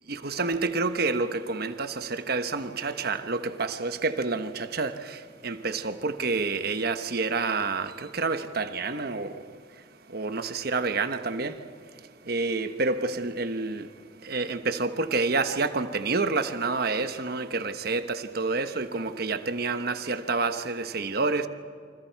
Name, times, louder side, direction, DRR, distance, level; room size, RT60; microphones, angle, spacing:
voice 1, 0.1-13.9 14.2-21.5, right 3 dB, 55° right, 1.2 m, -29 dB
28.5 x 25.5 x 4.7 m
head